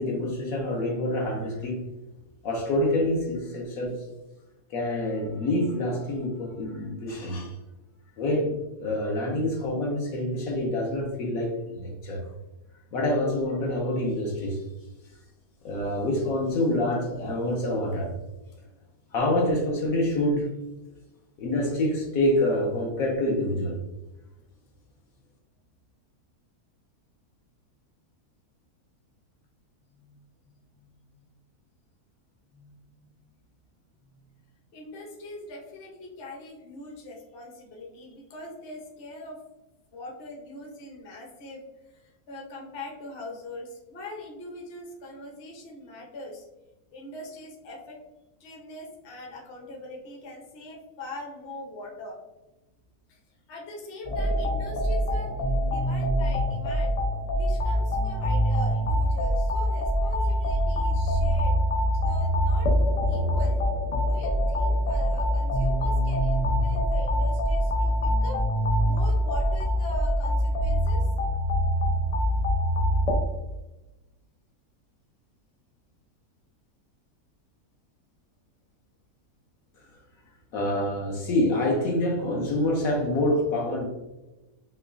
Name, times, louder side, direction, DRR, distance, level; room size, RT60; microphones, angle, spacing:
voice 1, 0.0-1.8 2.4-4.0 4.7-7.5 8.2-12.2 12.9-14.6 15.6-18.1 19.1-20.5 21.4-23.8 80.5-83.9, left 1 dB, 70° left, -1 dB, 1.1 m, -26 dB
voice 2, 29.9-30.2 30.7-31.2 32.5-33.2 34.0-34.3 34.7-39.4 39.9-46.5 46.9-48.0 48.4-52.2 53.1-53.2 53.5-55.3 55.7-57.0 57.3-61.5 61.9-62.7 63.1-63.6 64.0-68.4 68.8-71.1, left 2 dB, 45° left, -2 dB, 0.9 m, -42 dB
sound 1, 54.0-73.2, equal, 85° left, 0.3 m, -24 dB
5.7 x 2.3 x 2.6 m, 1.0 s
omnidirectional pair, 1.6 m